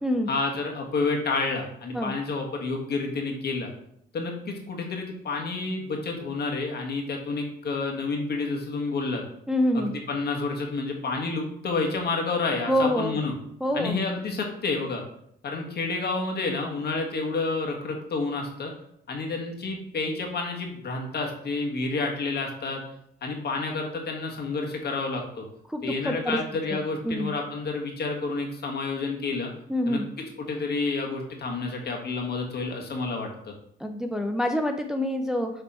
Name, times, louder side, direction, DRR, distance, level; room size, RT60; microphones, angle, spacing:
voice 1, 0.3-3.7 4.1-9.2 9.7-13.3 13.7-15.0 15.4-18.7 19.1-22.8 23.2-25.4 25.8-29.5 29.9-30.0 30.4-33.5, left 3 dB, 55° left, 1 dB, 1.6 m, -29 dB
voice 2, 9.5-9.9 12.7-13.2 13.6-14.0 25.7-26.4 26.7-27.3 29.7-30.0 33.8-35.5, equal, 5° right, 4 dB, 0.5 m, -26 dB
6.8 x 3.4 x 4.3 m, 0.71 s
cardioid pair, 90°, 20 cm